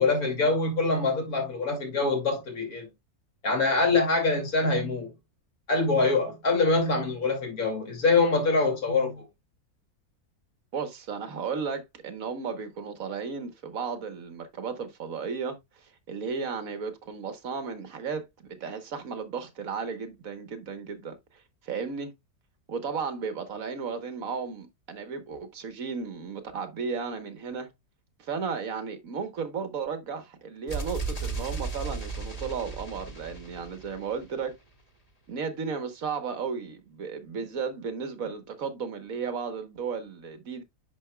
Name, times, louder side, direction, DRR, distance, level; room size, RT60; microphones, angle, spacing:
voice 1, 0.0-2.9 3.4-5.1 5.7-9.2, left 3 dB, 70° left, 2.8 m, -24 dB
voice 2, 10.7-18.2 18.5-21.2 21.6-22.1 22.7-27.7 28.2-34.5 35.3-40.6, right 5 dB, 65° right, 1.5 m, -34 dB
sound 1, 30.7-34.5, right 4 dB, 25° left, 1.5 m, -35 dB
9.8 x 5.7 x 2.2 m
omnidirectional pair, 1.6 m